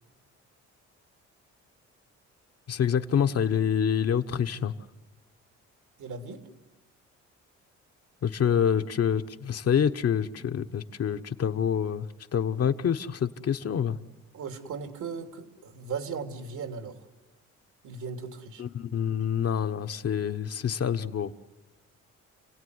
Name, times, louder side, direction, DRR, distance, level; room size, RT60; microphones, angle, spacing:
voice 1, 2.7-4.7 8.2-14.0 18.6-21.3, left 8 dB, 55° left, 7 dB, 1.2 m, -27 dB
voice 2, 6.0-6.4 14.3-17.0 17.8-18.6, right 5 dB, 75° right, 5 dB, 3.2 m, -37 dB
29.5 x 17.0 x 9.6 m, 1.2 s
cardioid pair, 90°, 30 cm